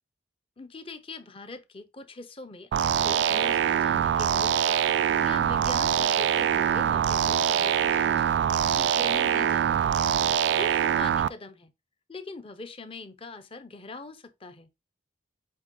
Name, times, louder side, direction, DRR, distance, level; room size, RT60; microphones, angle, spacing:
voice 1, 0.6-4.8 5.2-8.2 8.7-10.0 10.5-11.7 12.1-14.7, left 3 dB, 30° left, 0.7 m, -42 dB
sound 1, 2.7-11.3, right 8 dB, 70° right, 0.3 m, -24 dB
7.9 x 3.4 x 3.8 m
head